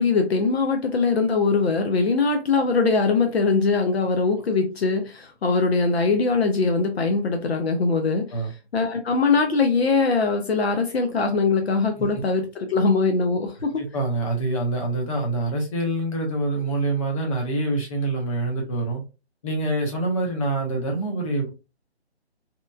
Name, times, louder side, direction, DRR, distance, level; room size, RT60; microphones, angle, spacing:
voice 1, 0.0-8.4 8.7-13.8, left 4 dB, 65° left, 0.5 m, -22 dB
voice 2, 13.8-19.0 19.4-21.5, right 2 dB, 30° left, 0.8 m, -25 dB
2.9 x 2.2 x 2.2 m
figure-of-eight pair, 150°, 33 cm